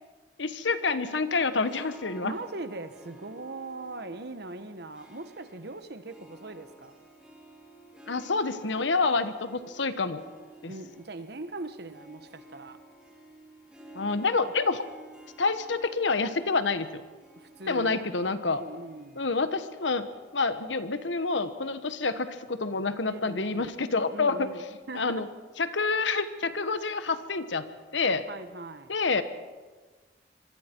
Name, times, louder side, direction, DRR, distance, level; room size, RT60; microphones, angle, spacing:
voice 1, 0.4-2.3 8.1-10.2 10.6-10.7 13.9-14.8 15.4-17.0 17.7-18.6 19.2-20.1 20.3-24.5 24.9-25.3 25.6-28.2 28.9-29.2, left 4 dB, 80° left, 11 dB, 1.2 m, -28 dB
Harp, 1.4-20.8, right 2 dB, 5° right, 3.1 m, -53 dB
voice 2, 2.2-6.9 10.7-12.8 17.4-18.1 18.4-19.2 23.1-23.7 24.1-25.2 28.3-28.9, right 2 dB, 60° right, 10 dB, 1.3 m, -40 dB
26.0 x 22.5 x 4.6 m, 1.4 s
head